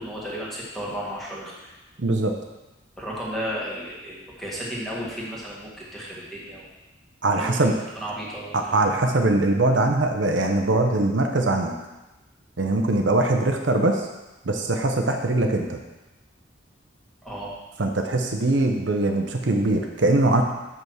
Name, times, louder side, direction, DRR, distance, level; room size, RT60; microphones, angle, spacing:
voice 1, 0.0-1.7 3.0-6.7 7.3-8.8 17.2-17.5, equal, ahead, -6 dB, 1.7 m, -34 dB
voice 2, 2.0-2.3 7.2-7.8 8.5-11.7 12.6-14.1 14.4-15.8 17.8-20.4, right 2 dB, 65° right, 3 dB, 0.7 m, -22 dB
6.0 x 5.5 x 6.2 m, 1.1 s
head